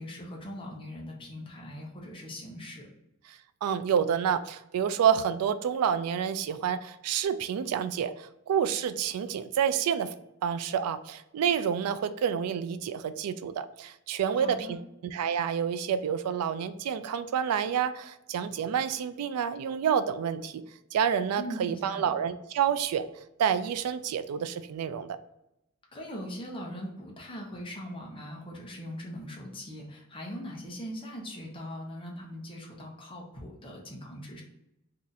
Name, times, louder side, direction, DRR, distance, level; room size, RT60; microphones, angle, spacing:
voice 1, 0.0-2.9 14.3-14.8 21.4-22.1 25.9-34.4, equal, 25° left, -2 dB, 0.7 m, -40 dB
voice 2, 3.6-10.1 10.4-20.6 20.9-23.0 23.4-25.2, right 8 dB, 85° right, 14 dB, 0.3 m, -28 dB
2.7 x 2.4 x 3.9 m, 0.86 s
head